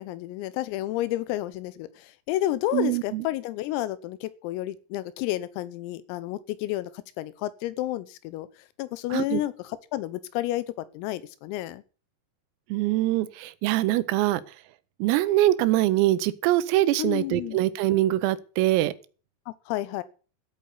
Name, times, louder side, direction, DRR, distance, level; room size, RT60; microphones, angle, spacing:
voice 1, 0.0-6.9 7.2-8.5 8.8-10.7 11.0-11.8 17.0-17.6 19.5-20.0, left 15 dB, 90° left, 3.7 m, -31 dB
voice 2, 2.7-3.3 9.1-9.4 12.7-14.4 15.0-18.9, right 15 dB, 90° right, 3.6 m, -23 dB
13.0 x 8.5 x 8.2 m
omnidirectional pair, 5.9 m